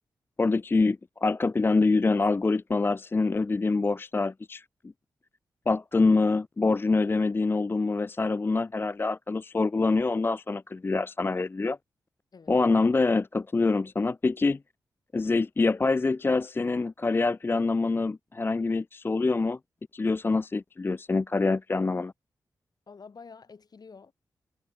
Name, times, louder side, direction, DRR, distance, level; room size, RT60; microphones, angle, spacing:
voice 1, 0.4-4.7 5.7-11.8 12.5-14.6 15.1-19.6 19.9-22.1, left 3 dB, 30° left, 0.4 m, -25 dB
voice 2, 22.9-24.1, left 5 dB, 55° left, 3.0 m, -48 dB
cardioid pair, 50°, 8 cm